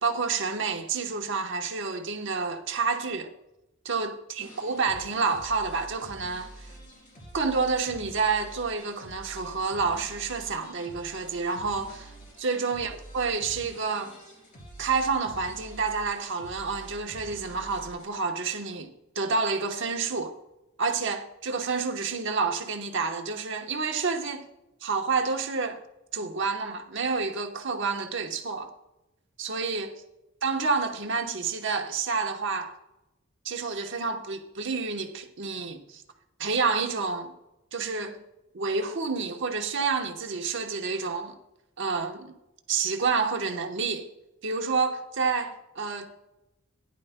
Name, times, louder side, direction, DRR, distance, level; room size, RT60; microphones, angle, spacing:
voice 1, 0.0-3.3 3.8-6.7 7.3-12.1 12.4-14.2 14.8-20.4 20.8-24.5 24.8-25.8 26.1-28.7 29.4-29.9 30.4-32.7 33.4-36.0 36.4-37.3 37.7-38.2 38.5-41.3 41.8-42.3 42.7-44.1 44.4-46.1, right 4 dB, 65° right, 1.1 m, -29 dB
sound 1, 4.4-18.2, right 1 dB, 40° left, 3.6 m, -47 dB
14.5 x 10.5 x 2.2 m
head